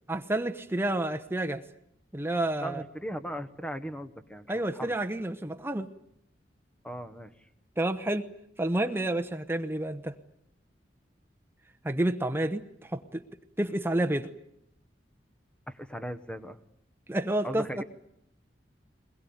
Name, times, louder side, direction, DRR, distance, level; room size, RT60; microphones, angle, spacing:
voice 1, 0.1-1.6 2.1-2.8 4.5-5.9 7.8-8.3 8.6-10.1 11.8-13.2 13.6-14.3 17.1-17.8, right 1 dB, 15° right, 7 dB, 1.0 m, -29 dB
voice 2, 2.6-5.0 6.8-7.3 15.7-16.6 17.4-17.8, equal, 5° left, 11 dB, 1.2 m, -38 dB
23.0 x 21.0 x 9.4 m, 0.72 s
head